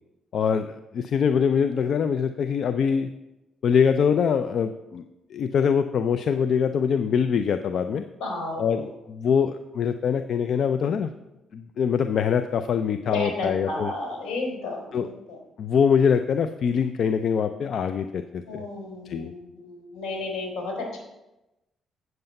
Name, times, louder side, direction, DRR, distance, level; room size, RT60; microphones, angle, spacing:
voice 1, 0.3-3.1 3.6-5.0 5.3-8.0 8.6-11.1 11.5-13.9 14.9-15.1 15.6-18.6 19.1-19.3, left 7 dB, 60° left, 9 dB, 0.4 m, -23 dB
voice 2, 8.2-8.9 13.0-15.4 18.4-21.0, left 2 dB, 85° left, 0 dB, 3.7 m, -32 dB
7.9 x 7.7 x 5.3 m, 0.97 s
cardioid pair, 90°, 0 cm